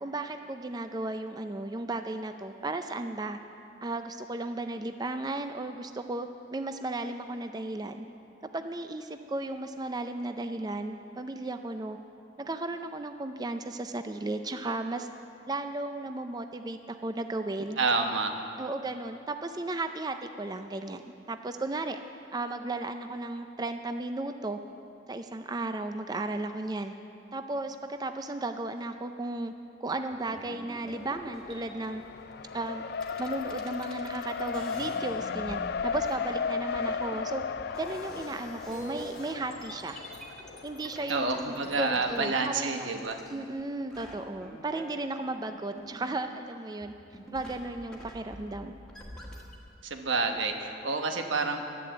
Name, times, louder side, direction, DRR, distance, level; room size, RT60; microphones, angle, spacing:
voice 1, 0.0-3.4 3.8-8.1 8.5-12.0 12.4-15.1 15.5-17.8 18.6-21.0 21.3-22.0 22.3-24.6 25.1-26.9 27.3-29.5 29.8-32.0 32.5-32.8 33.2-37.4 37.8-40.0 40.6-42.9 43.3-46.9 47.3-48.7, right 2 dB, 20° right, 7 dB, 0.4 m, -35 dB
voice 2, 17.8-18.3 41.1-43.2 49.8-51.6, right 3 dB, 90° right, 5 dB, 1.2 m, -29 dB
sound 1, 29.8-31.9 32.7-32.8 32.9-43.6 43.9-46.5 46.8-49.6, equal, 5° left, 1.6 m, -47 dB
Race car auto racing, 30.9-41.9, left 6 dB, 55° left, 0.4 m, -36 dB
11.0 x 11.0 x 7.9 m, 2.7 s
head